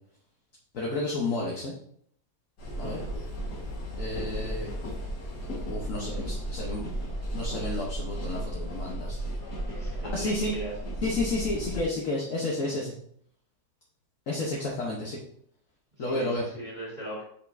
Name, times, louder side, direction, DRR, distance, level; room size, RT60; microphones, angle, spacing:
voice 1, 0.7-1.7 2.8-3.0 4.0-4.7 5.7-6.8 7.3-9.4 10.1-10.5 11.0-12.9 14.3-15.2 16.0-16.5, left 2 dB, 55° left, -3 dB, 1.4 m, -31 dB
sound 1, 2.6-11.8, right 1 dB, 85° left, 2.1 m, -34 dB
voice 2, 9.6-10.7 16.1-17.2, right 1 dB, 35° right, -6 dB, 2.7 m, -39 dB
6.8 x 5.2 x 2.6 m, 0.66 s
omnidirectional pair, 1.7 m